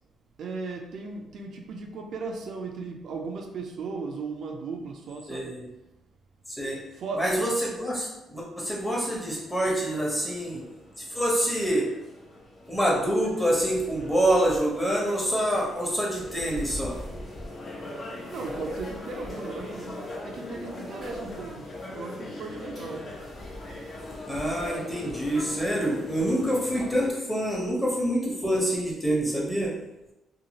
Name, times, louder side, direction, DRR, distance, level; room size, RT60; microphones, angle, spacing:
voice 1, 0.4-5.5 7.0-7.2 18.3-19.9 20.2-23.0, right 4 dB, 65° right, 1 dB, 0.4 m, -36 dB
voice 2, 5.3-5.7 6.6-6.8 7.2-10.6 11.0-11.9 12.7-17.0 24.3-29.7, right 1 dB, 5° left, -4 dB, 1.0 m, -26 dB
sound 1, 9.1-27.1, left 1 dB, 40° left, 0.7 m, -40 dB
2.7 x 2.4 x 2.9 m, 0.94 s
cardioid pair, 90°, 0 cm